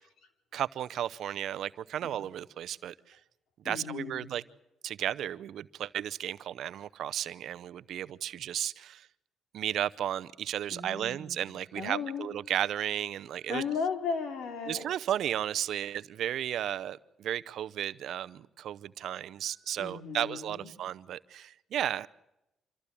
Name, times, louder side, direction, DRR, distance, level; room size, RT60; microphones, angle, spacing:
voice 1, 0.5-3.2 3.6-4.4 4.8-9.1 9.5-13.6 14.7-22.1, right 11 dB, 75° right, 0.7 m, -34 dB
voice 2, 3.6-4.3 10.7-12.3 13.5-14.8 19.8-20.7, left 5 dB, 75° left, 3.5 m, -36 dB
26.0 x 14.5 x 8.5 m
cardioid pair, 90°, 0 cm